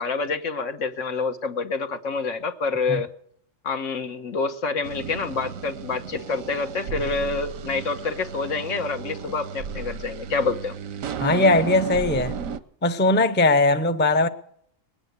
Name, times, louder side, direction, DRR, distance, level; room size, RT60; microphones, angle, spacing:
voice 1, 0.0-3.1 3.6-10.7, left 4 dB, 70° left, 1.4 m, -27 dB
sound 1, 4.8-12.6, right 6 dB, 90° right, 1.2 m, -34 dB
voice 2, 11.2-12.4 12.8-14.3, left 2 dB, 10° left, 0.5 m, -19 dB
20.0 x 8.9 x 8.1 m
omnidirectional pair, 1.3 m